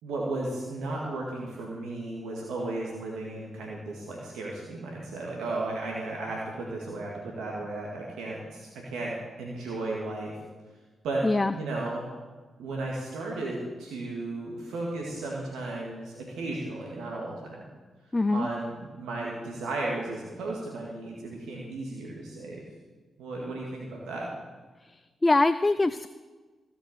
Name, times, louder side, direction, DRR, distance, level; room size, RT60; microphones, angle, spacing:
voice 1, 0.0-10.3 11.0-11.2 11.6-12.0 12.6-17.6 18.3-22.6 23.2-24.3, right 2 dB, 80° right, -3 dB, 2.0 m, -34 dB
voice 2, 11.2-11.5 18.1-18.5 24.8-26.1, left 2 dB, 30° left, 12 dB, 0.5 m, -24 dB
16.5 x 6.0 x 8.2 m, 1.3 s
hypercardioid pair, 40°, 0 cm